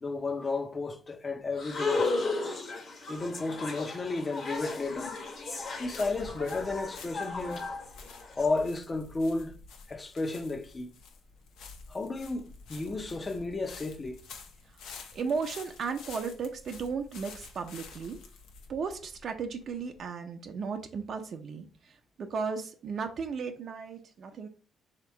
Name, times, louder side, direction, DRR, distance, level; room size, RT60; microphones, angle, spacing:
voice 1, 0.0-2.6 3.1-5.1 5.8-7.7 8.3-9.5 9.9-10.9 11.9-14.2, left 3 dB, 30° left, 0.5 m, -33 dB
sound 1, 1.6-8.5, left 3 dB, 50° left, 1.2 m, -35 dB
sound 2, 4.5-20.1, left 4 dB, 85° left, 0.7 m, -50 dB
voice 2, 15.1-18.2 18.7-21.7 22.2-24.5, right 5 dB, 60° right, 0.6 m, -35 dB
3.4 x 2.9 x 4.4 m
cardioid pair, 90°, 0 cm